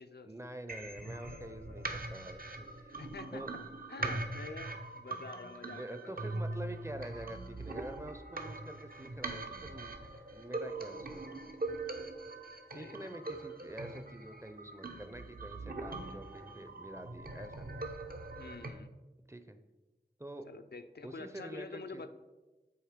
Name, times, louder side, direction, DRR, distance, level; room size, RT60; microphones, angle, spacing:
voice 1, 0.2-3.0 3.3-3.5 4.0-4.1 5.7-10.0 10.3-11.4 12.7-17.8 19.3-19.6 20.2-20.5 21.0-22.1, right 1 dB, 15° right, 9 dB, 0.5 m, -46 dB
sound 1, 0.7-18.7, right 2 dB, 55° right, 0.7 m, -42 dB
voice 2, 3.0-3.4 3.9-6.1 12.7-13.1 18.4-18.9 20.4-22.1, left 4 dB, 70° left, 8 dB, 0.4 m, -47 dB
7.9 x 3.1 x 5.0 m, 1.1 s
wide cardioid pair, 45°, 17 cm